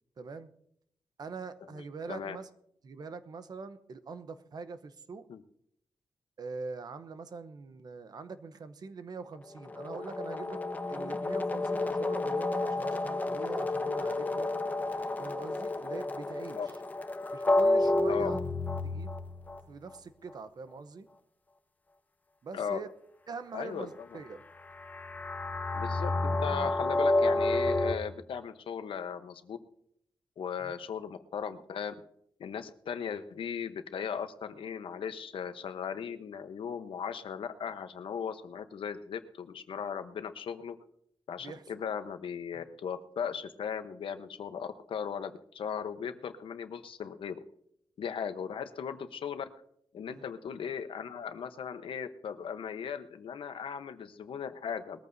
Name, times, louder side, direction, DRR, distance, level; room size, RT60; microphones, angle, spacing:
voice 1, 0.2-0.5 1.2-2.5 2.8-5.2 6.4-10.6 10.9-14.6 15.2-16.6 17.3-18.4 18.8-19.1 19.7-21.1 22.4-22.9 23.3-24.4 30.6-30.7 41.4-41.8 42.5-42.6 50.1-50.3, right 4 dB, 50° right, 11 dB, 0.9 m, -43 dB
sound 1, 9.5-19.6 24.8-27.9, left 2 dB, 20° left, 0.8 m, -30 dB
voice 2, 23.5-24.2 25.7-29.6 30.4-31.9 32.4-40.8 41.3-47.4 48.0-49.5 49.9-55.0, left 7 dB, 90° left, 9 dB, 1.0 m, -37 dB
21.0 x 14.0 x 2.7 m, 0.71 s
wide cardioid pair, 175°, 9 cm